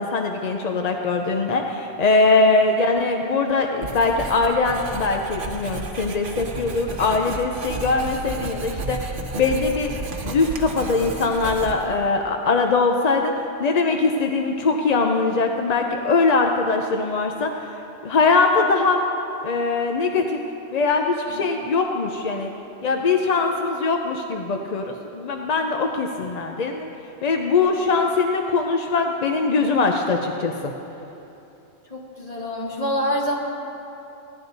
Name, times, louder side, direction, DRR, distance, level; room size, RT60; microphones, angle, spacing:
voice 1, 0.0-9.0 9.3-9.9 10.2-13.3 13.6-17.5 18.0-19.0 19.4-20.4 20.7-22.5 22.8-26.9 27.2-30.7, left 3 dB, 50° left, 4 dB, 0.5 m, -21 dB
Writing, 3.8-12.0, right 3 dB, 75° right, 1.3 m, -32 dB
voice 2, 31.9-33.3, equal, 30° left, -3 dB, 1.7 m, -26 dB
15.5 x 11.0 x 4.0 m, 2.9 s
omnidirectional pair, 1.3 m